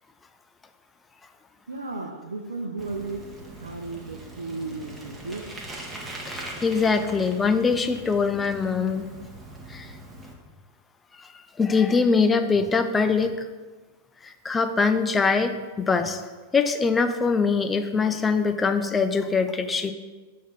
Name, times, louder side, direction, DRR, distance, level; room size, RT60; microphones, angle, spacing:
voice 1, 1.7-5.5, right 3 dB, 75° right, 2 dB, 0.6 m, -35 dB
Bicycle, 2.8-10.3, right 1 dB, 10° right, 1.3 m, -41 dB
voice 2, 6.3-9.1 9.7-9.9 11.6-13.4 14.2-16.2 16.5-19.9, left 5 dB, 15° left, 8 dB, 0.5 m, -23 dB
7.2 x 3.7 x 5.9 m, 1.3 s
figure-of-eight pair, 90°, 0 cm